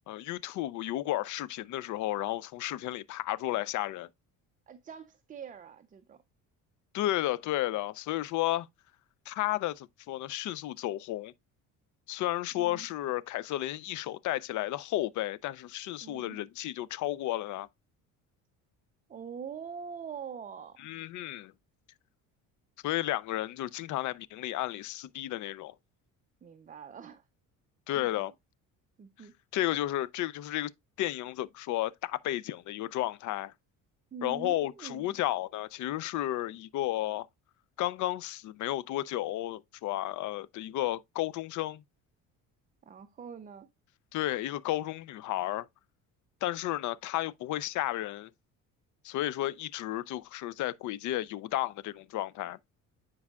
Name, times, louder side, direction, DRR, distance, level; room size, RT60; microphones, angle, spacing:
voice 1, 0.1-4.1 6.9-8.7 9.3-11.3 12.1-17.7 20.8-21.5 22.8-25.7 27.9-28.3 29.5-30.7 31.0-33.5 34.2-37.3 37.8-41.8 44.1-45.7 46.4-48.3 49.0-52.6, left 15 dB, 55° left, 0.5 m, -33 dB
voice 2, 4.7-6.2 12.6-12.9 16.0-16.4 19.1-20.8 26.4-27.2 28.0-28.3 29.0-29.3 34.1-35.2 42.8-43.7, right 6 dB, 25° right, 0.5 m, -44 dB
9.6 x 4.7 x 2.3 m
cardioid pair, 115°, 35 cm